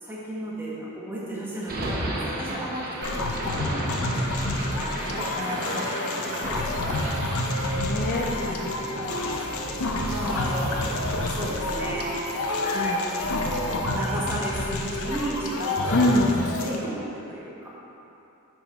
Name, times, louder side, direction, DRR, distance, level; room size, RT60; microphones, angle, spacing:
voice 1, 0.0-3.3 3.6-4.2 8.1-8.9 10.1-10.8 11.1-12.2 13.0-17.7, right 1 dB, 10° right, -6 dB, 1.3 m, -34 dB
sound 1, 1.6-13.8, right 1 dB, 40° right, 1.2 m, -35 dB
sound 2, 3.0-16.8, left 1 dB, 80° left, 0.7 m, -28 dB
voice 2, 5.3-5.9 7.0-7.3 7.7-8.7 12.6-13.0 15.9-16.3, left 1 dB, 40° left, 0 dB, 0.4 m, -27 dB
6.8 x 6.2 x 4.3 m, 2.8 s
head